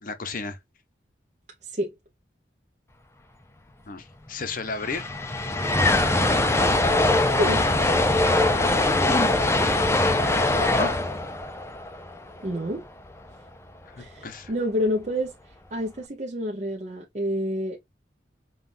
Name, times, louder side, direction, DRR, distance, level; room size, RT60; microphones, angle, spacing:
voice 1, 0.0-0.6 3.9-5.1 10.0-10.9 13.9-14.5, left 3 dB, 50° left, 0.7 m, -33 dB
sound 1, 4.3-4.4 4.5-12.8, left 2 dB, 15° left, 0.4 m, -22 dB
voice 2, 7.3-7.6 12.4-12.8 14.0-15.3 15.7-17.8, equal, 40° right, 0.7 m, -28 dB
5.6 x 2.4 x 2.5 m
head